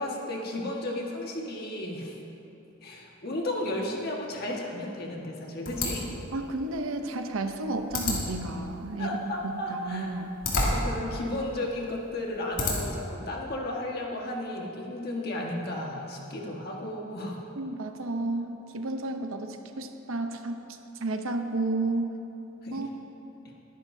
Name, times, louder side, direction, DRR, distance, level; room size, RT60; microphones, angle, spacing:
voice 1, 0.0-2.2 2.8-6.1 9.0-10.1 10.5-17.4 22.6-22.9, left 1 dB, 50° left, -1 dB, 1.6 m, -34 dB
sound 1, 5.6-13.1, left 2 dB, 85° left, 2.6 m, -33 dB
voice 2, 6.3-10.3 17.6-20.7 21.0-22.1 22.7-22.9, right 2 dB, 85° right, 6 dB, 0.8 m, -32 dB
22.0 x 10.5 x 2.7 m, 3.0 s
head